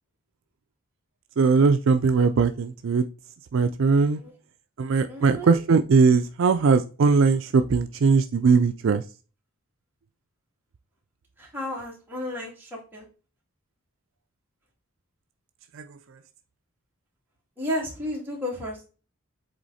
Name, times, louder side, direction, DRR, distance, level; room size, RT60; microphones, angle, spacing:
voice 1, 1.4-3.0 3.5-4.2 4.8-9.0, right 4 dB, 60° right, 0.4 m, -20 dB
voice 2, 5.1-5.6 11.4-13.1 17.6-18.8, left 1 dB, 10° right, 2.5 m, -32 dB
8.0 x 3.5 x 4.1 m
head